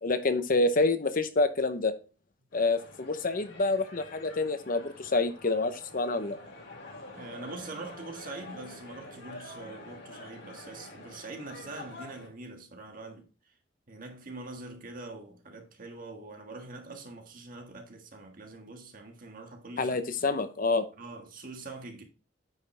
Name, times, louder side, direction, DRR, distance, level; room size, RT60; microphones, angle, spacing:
voice 1, 0.0-1.9 2.5-6.4 19.8-20.9, left 3 dB, 45° left, 0.7 m, -27 dB
sound 1, 2.5-12.3, left 2 dB, 70° left, 4.8 m, -47 dB
voice 2, 6.8-13.3 13.9-20.0 21.0-22.0, right 3 dB, 45° right, 1.7 m, -44 dB
9.3 x 5.6 x 3.2 m
head